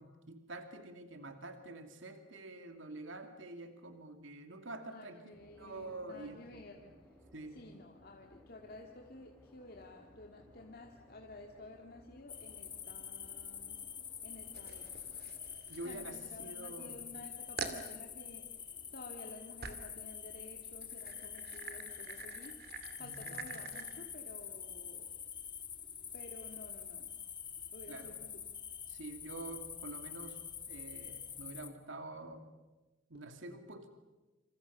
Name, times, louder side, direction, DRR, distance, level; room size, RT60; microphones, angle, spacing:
voice 1, 0.0-6.7 7.3-7.6 15.7-16.9 23.0-23.6 27.9-28.1 28.9-30.4 30.7-32.5 33.1-33.9, right 2 dB, 75° right, 6 dB, 2.5 m, -47 dB
voice 2, 4.8-6.9 7.5-13.8 14.2-15.2 15.8-25.1 26.1-27.1 27.7-28.4, left 2 dB, 50° left, 1 dB, 2.2 m, -53 dB
sound 1, 5.3-15.3, equal, 5° left, 6.5 m, -63 dB
sound 2, 12.3-31.7, left 7 dB, 25° left, 2.0 m, -46 dB
sound 3, 14.5-16.6 17.0-17.1 17.6-17.9 19.6-20.0 20.7-24.0, right 5 dB, 50° right, 2.4 m, -46 dB
27.5 x 27.5 x 6.9 m, 1.1 s
head